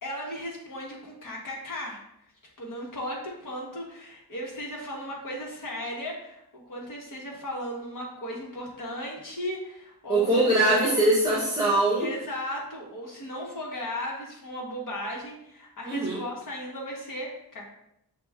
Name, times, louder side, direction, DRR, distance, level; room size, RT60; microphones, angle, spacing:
voice 1, 0.0-2.0 2.6-10.9 12.0-17.7, equal, 55° left, -2 dB, 1.2 m, -36 dB
voice 2, 10.1-12.1 15.9-16.2, right 1 dB, 10° right, -6 dB, 0.8 m, -22 dB
5.8 x 2.3 x 3.5 m, 0.80 s
wide cardioid pair, 150°, 38 cm